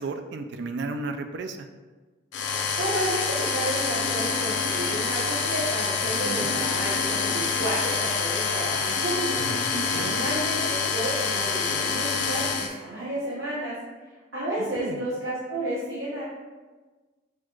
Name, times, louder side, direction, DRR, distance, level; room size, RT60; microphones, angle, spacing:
voice 1, 0.0-1.7 6.0-6.6 9.4-10.2 14.6-15.0, right 3 dB, 60° right, 7 dB, 0.4 m, -34 dB
sound 1, 2.3-12.7, left 5 dB, 65° left, 0.6 m, -27 dB
voice 2, 2.8-9.5 9.9-13.7 14.3-16.2, right 1 dB, 80° right, -9 dB, 1.0 m, -31 dB
6.2 x 2.4 x 3.0 m, 1.3 s
head